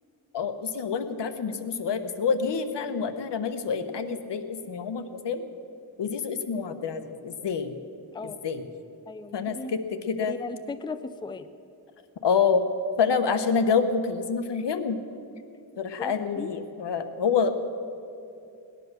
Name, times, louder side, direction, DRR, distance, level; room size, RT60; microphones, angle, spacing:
voice 1, 0.3-5.5 6.0-7.8 8.2-8.6 9.3-10.4 12.2-12.6 13.0-15.0 15.8-17.5, left 5 dB, 75° left, 9 dB, 1.1 m, -27 dB
voice 2, 9.1-9.7 10.3-11.5 16.0-16.5, left 3 dB, 10° left, 11 dB, 0.5 m, -37 dB
19.0 x 10.5 x 6.7 m, 2.6 s
cardioid pair, 95°, 43 cm